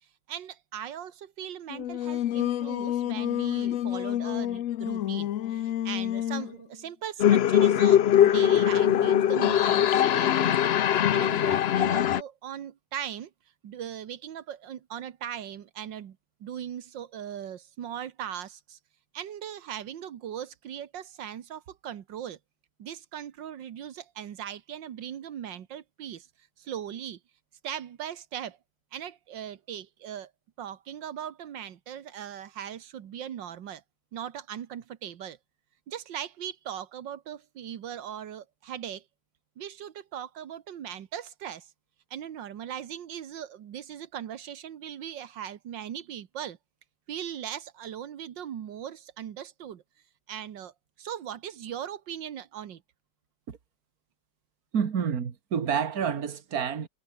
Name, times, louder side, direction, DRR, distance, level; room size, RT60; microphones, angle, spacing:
voice 1, 0.0-13.3 13.6-18.8 19.1-22.4 22.8-27.2 27.6-28.6 28.9-30.3 30.6-33.8 34.1-35.4 35.9-39.1 39.6-41.7 42.1-46.6 47.1-49.8 50.3-52.8, right 9 dB, 90° right, 1.9 m, -39 dB
Singing, 1.7-6.6, left 12 dB, 65° left, 0.9 m, -30 dB
sound 1, 7.2-12.2, left 10 dB, 85° left, 0.5 m, -21 dB
voice 2, 54.7-56.9, right 7 dB, 55° right, 2.1 m, -28 dB
omnidirectional pair, 1.9 m